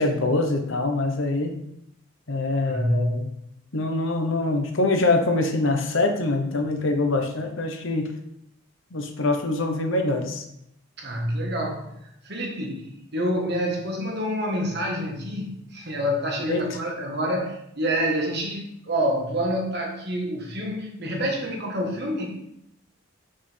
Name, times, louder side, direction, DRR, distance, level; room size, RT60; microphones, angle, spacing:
voice 1, 0.0-1.5 2.3-3.3 3.7-8.1 8.9-10.4 16.4-16.7, left 2 dB, 60° left, 4 dB, 0.9 m, -24 dB
voice 2, 2.6-3.3 11.0-22.3, equal, 50° right, 0 dB, 1.4 m, -27 dB
6.3 x 5.5 x 3.4 m, 0.76 s
head